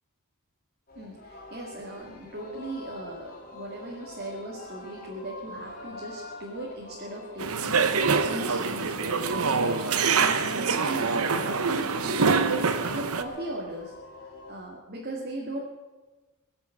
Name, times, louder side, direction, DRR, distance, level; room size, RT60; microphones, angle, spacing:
Singing, 0.9-14.6, left 2 dB, 40° left, 2.8 m, -44 dB
voice 1, 1.0-15.6, right 1 dB, 45° right, -3 dB, 2.1 m, -38 dB
sound 1, 7.4-13.2, right 5 dB, 80° right, 1.0 m, -25 dB
22.0 x 7.6 x 7.7 m, 1.2 s
head